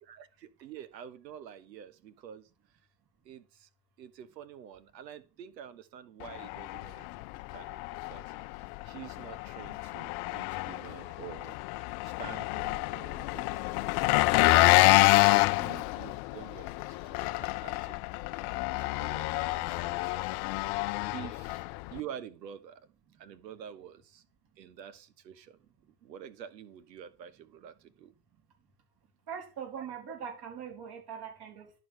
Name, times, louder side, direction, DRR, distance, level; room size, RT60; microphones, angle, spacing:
voice 1, 0.0-2.5 3.2-3.7 4.0-7.1 7.3-8.3 8.8-11.6 12.0-14.8 15.2-18.0 18.4-18.5 18.8-20.3 20.7-20.8 21.1-21.6 21.9-22.9 23.2-24.2 24.6-25.6 26.0-28.1 29.8-29.9, right 9 dB, 85° right, 1.2 m, -48 dB
Engine, 6.2-22.0, left 21 dB, 55° left, 0.6 m, -28 dB
voice 2, 29.3-31.7, right 7 dB, 50° right, 4.2 m, -41 dB
11.0 x 4.8 x 6.3 m
hypercardioid pair, 85°, 49 cm